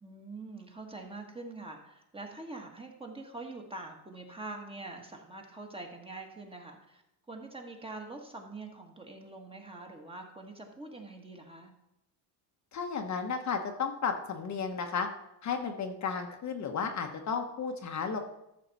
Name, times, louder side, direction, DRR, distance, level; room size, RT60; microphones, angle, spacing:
voice 1, 0.0-7.0 7.3-11.7, right 2 dB, 10° right, 2 dB, 1.5 m, -44 dB
voice 2, 12.7-15.1 15.4-18.2, left 5 dB, 40° left, 4 dB, 1.1 m, -33 dB
13.0 x 6.6 x 4.1 m, 0.86 s
cardioid pair, 125°, 45 cm